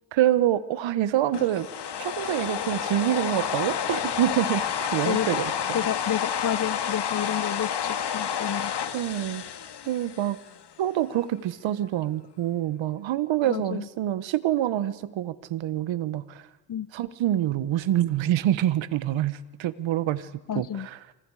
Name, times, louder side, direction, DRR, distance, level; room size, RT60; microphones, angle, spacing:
voice 1, 0.1-1.7 2.0-5.8 8.9-9.4 9.8-10.4 10.8-16.5 16.9-20.3 20.5-21.0, right 12 dB, 75° right, 15 dB, 1.3 m, -26 dB
sound 1, 1.3-10.6, left 8 dB, 60° left, 2.1 m, -30 dB
voice 2, 5.7-8.7 13.4-13.9 16.7-16.9 20.5-20.9, left 10 dB, 45° left, 19 dB, 0.9 m, -30 dB
29.0 x 28.0 x 5.0 m, 1.1 s
supercardioid pair, 60°, 47 cm